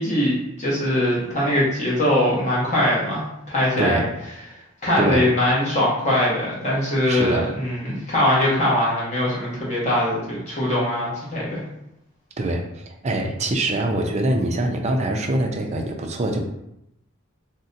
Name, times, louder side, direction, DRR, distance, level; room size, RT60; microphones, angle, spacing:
voice 1, 0.0-4.0 4.8-11.6, left 1 dB, 35° left, -6 dB, 0.9 m, -22 dB
voice 2, 3.8-4.1 5.0-5.3 7.0-7.5 12.4-16.4, right 1 dB, 35° right, 3 dB, 0.4 m, -24 dB
2.6 x 2.1 x 3.8 m, 0.82 s
head